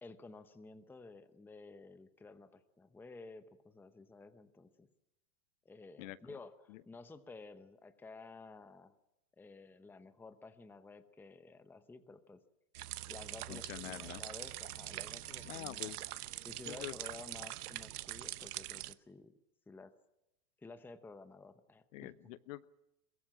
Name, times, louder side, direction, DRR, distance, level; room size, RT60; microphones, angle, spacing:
voice 1, 0.0-4.9 5.6-9.0 9.4-12.4 13.1-16.0 16.4-19.3 19.7-19.9 20.6-22.1, left 3 dB, 5° left, 10 dB, 0.8 m, -53 dB
voice 2, 6.0-6.4 6.7-6.8 13.5-14.2 15.4-16.0 16.7-16.9 21.9-22.7, left 17 dB, 55° left, 16 dB, 0.9 m, -46 dB
sound 1, 12.7-18.9, right 15 dB, 80° right, 1.0 m, -44 dB
Wind instrument woodwind instrument, 12.9-16.9, left 3 dB, 25° left, 5.0 m, -64 dB
22.5 x 22.0 x 7.4 m, 0.90 s
supercardioid pair, 145°, 45 cm